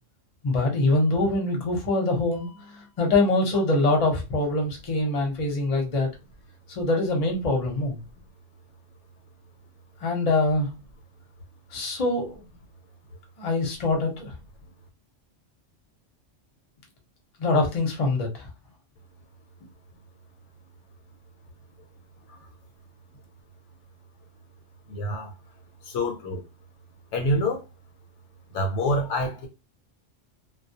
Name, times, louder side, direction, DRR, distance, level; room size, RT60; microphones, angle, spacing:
voice 1, 0.4-6.1 6.7-8.0 10.0-10.7 11.7-12.4 13.4-14.3 17.4-18.5, left 2 dB, 35° left, 0.7 m, -24 dB
voice 2, 24.9-25.3 25.8-26.4 27.1-27.6 28.5-29.5, left 1 dB, 70° left, 0.9 m, -26 dB
2.2 x 2.1 x 2.7 m
omnidirectional pair, 1.3 m